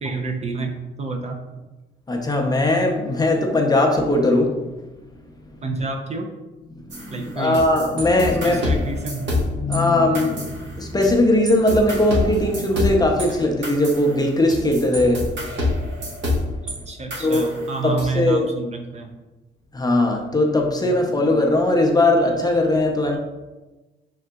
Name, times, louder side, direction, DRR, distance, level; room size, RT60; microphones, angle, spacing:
voice 1, 0.0-1.4 5.6-6.3 7.1-7.7 8.4-9.3 16.9-19.1 20.8-21.1, right 3 dB, 35° right, 3 dB, 0.5 m, -29 dB
voice 2, 2.1-4.6 6.7-8.9 9.6-15.3 17.2-17.5 17.8-18.5 19.7-23.2, left 1 dB, 20° left, 1 dB, 0.6 m, -19 dB
sound 1, 6.9-9.8 10.1-11.2 11.5-16.8 17.1-18.1, left 2 dB, 65° right, 1.2 m, -27 dB
4.8 x 3.7 x 2.3 m, 1.1 s
cardioid pair, 90°, 20 cm